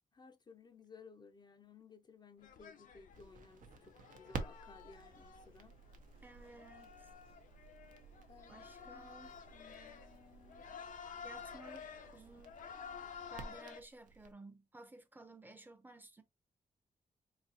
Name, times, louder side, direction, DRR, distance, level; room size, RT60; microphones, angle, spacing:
voice 1, 0.1-5.8 8.3-9.1 9.5-10.7, left 5 dB, 35° left, 0.4 m, -59 dB
sound 1, 2.4-13.8, left 7 dB, 85° left, 0.6 m, -52 dB
Crackle, 3.1-14.3, right 4 dB, 80° right, 0.7 m, -52 dB
fast food shop ambience, 4.9-12.4, right 5 dB, 45° right, 0.8 m, -71 dB
voice 2, 6.2-7.1 8.5-9.3 11.2-12.6 13.3-16.2, right 2 dB, 15° right, 0.5 m, -55 dB
4.0 x 2.7 x 2.6 m
wide cardioid pair, 165°, 13 cm